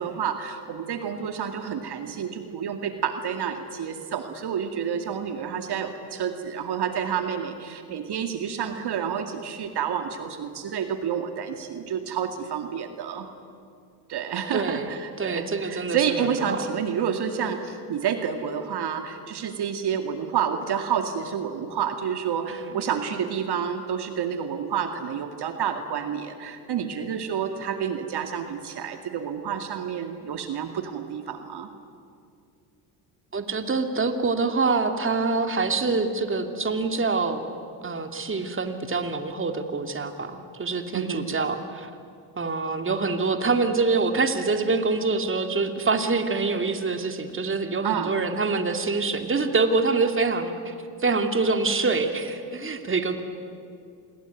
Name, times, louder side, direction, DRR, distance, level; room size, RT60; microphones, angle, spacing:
voice 1, 0.0-13.3 14.1-31.7 40.9-41.3 47.8-48.1, right 7 dB, 50° right, 7 dB, 2.3 m, -29 dB
voice 2, 14.5-16.6 22.5-22.7 33.3-37.5 37.8-41.9 42.4-50.7 51.0-53.2, right 3 dB, 25° right, 7 dB, 2.6 m, -25 dB
27.0 x 22.0 x 9.4 m, 2.4 s
supercardioid pair, 75°, 49 cm